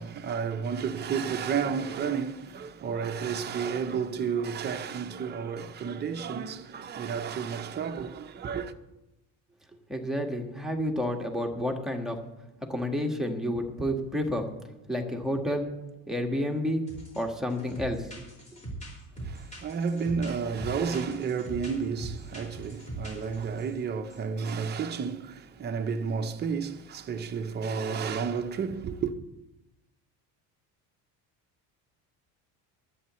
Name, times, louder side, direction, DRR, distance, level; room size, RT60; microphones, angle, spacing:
voice 1, 0.0-8.7 19.2-29.1, right 6 dB, 25° right, 0.8 m, -31 dB
voice 2, 9.9-12.2 12.7-14.4 14.9-15.7 16.1-16.8 17.1-18.0, equal, ahead, 1.6 m, -30 dB
sound 1, 16.9-17.2 17.5-23.7 24.1-24.2 24.5-24.7, right 2 dB, 20° left, 4.3 m, -41 dB
23.5 x 8.7 x 3.1 m
cardioid pair, 135°, 37 cm